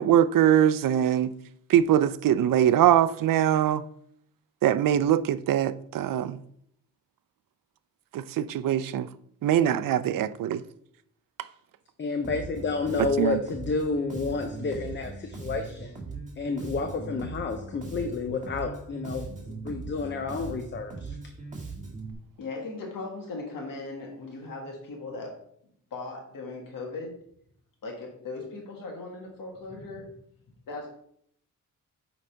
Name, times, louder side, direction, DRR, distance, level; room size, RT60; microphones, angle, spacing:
voice 1, 0.0-1.3 1.7-3.8 4.6-6.4 8.1-9.1 9.4-10.6 13.2-13.4, right 10 dB, 75° right, 0.5 m, -22 dB
voice 2, 12.0-16.0 16.4-21.2, left 4 dB, 35° left, 0.6 m, -30 dB
Bass guitar, 12.2-22.1, right 4 dB, 20° right, 1.7 m, -39 dB
voice 3, 22.4-25.4 25.9-27.2 27.8-30.1 30.7-30.9, left 3 dB, 75° left, 1.7 m, -38 dB
8.6 x 4.0 x 4.5 m
cardioid pair, 120°, 33 cm